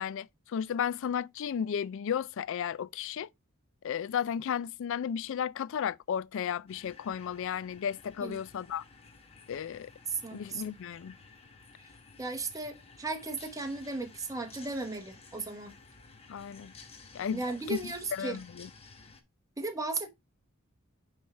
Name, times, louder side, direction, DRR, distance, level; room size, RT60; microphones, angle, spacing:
voice 1, 0.0-3.3 3.8-8.8 9.5-9.9 10.3-11.1 16.3-16.7 17.1-17.4 17.7-18.7, left 8 dB, 60° left, 0.3 m, -34 dB
sound 1, 6.7-19.2, left 4 dB, 30° left, 1.0 m, -54 dB
voice 2, 10.1-10.6 12.2-15.8 17.3-18.4 19.6-20.1, right 3 dB, 15° right, 0.9 m, -36 dB
9.4 x 3.4 x 3.3 m
head